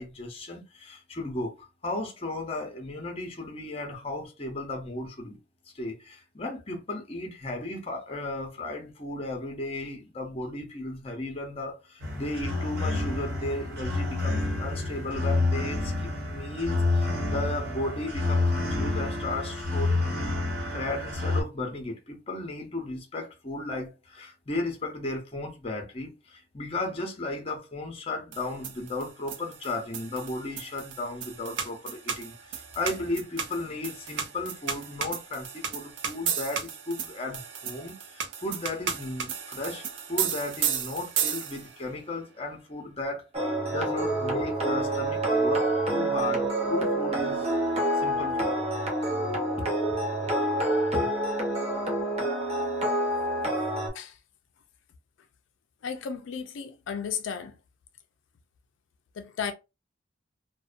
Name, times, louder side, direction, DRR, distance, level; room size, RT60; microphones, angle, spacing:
voice 1, 0.0-5.4 5.7-20.1 20.7-47.5 47.9-48.6 49.6-49.7 50.9-51.1, left 2 dB, 30° left, 0.7 m, -35 dB
sound 1, 12.0-21.4, left 2 dB, 55° right, 1.0 m, -28 dB
sound 2, 28.3-41.8, right 7 dB, 75° right, 0.4 m, -34 dB
sound 3, 43.3-53.9, right 1 dB, 35° right, 0.7 m, -27 dB
voice 2, 55.8-57.5 59.2-59.5, left 7 dB, 85° left, 0.4 m, -34 dB
2.6 x 2.1 x 2.4 m
head